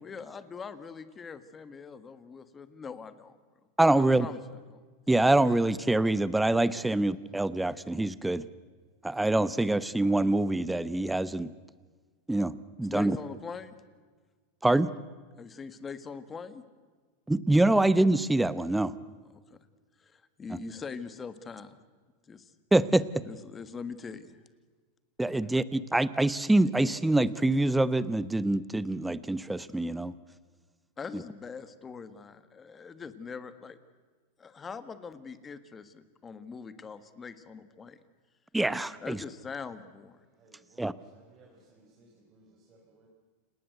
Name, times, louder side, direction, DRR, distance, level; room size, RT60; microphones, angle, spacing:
voice 1, 0.0-3.4 3.9-4.8 6.9-7.0 12.8-13.7 15.4-16.6 19.3-19.6 20.0-21.8 22.3-22.5 23.2-24.4 31.0-33.8 34.4-38.0 39.0-40.2, left 5 dB, 15° left, 12 dB, 1.6 m, -42 dB
voice 2, 3.8-4.3 5.1-8.4 9.0-11.5 12.3-13.2 14.6-14.9 17.3-18.9 22.7-23.0 25.2-30.1 38.5-39.2 40.8-40.9, right 2 dB, 5° right, 16 dB, 0.8 m, -25 dB
voice 3, 40.3-43.1, right 2 dB, 25° right, -1 dB, 4.5 m, -61 dB
30.0 x 19.0 x 8.0 m, 1.4 s
supercardioid pair, 145°, 0 cm